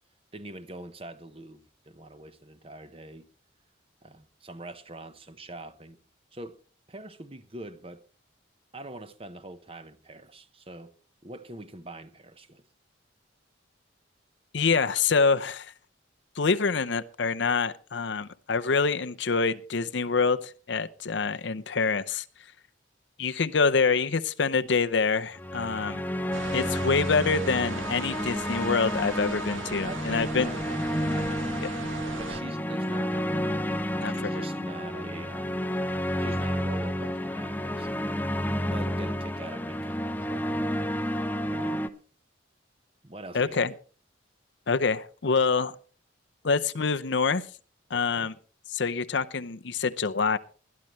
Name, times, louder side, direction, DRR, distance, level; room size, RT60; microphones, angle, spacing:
voice 1, 0.3-3.3 4.0-6.0 6.3-6.6 6.9-8.0 8.7-10.9 11.2-12.6 29.2-29.4 29.8-31.6 32.2-33.4 33.9-35.5 36.2-38.0 38.6-40.0 40.3-40.5 41.5-41.9 43.0-43.7 47.9-48.3, right 2 dB, 30° right, 0.9 m, -43 dB
voice 2, 14.5-15.7 16.4-22.2 23.2-26.0 26.5-30.5 34.0-34.3 43.3-43.7 44.7-45.7 46.4-47.4 47.9-48.3 48.7-50.4, left 4 dB, 65° left, 0.7 m, -26 dB
sound 1, 25.3-41.9, equal, 10° left, 0.8 m, -30 dB
sound 2, 26.3-32.4, right 3 dB, 90° right, 1.3 m, -38 dB
20.5 x 12.0 x 3.1 m
head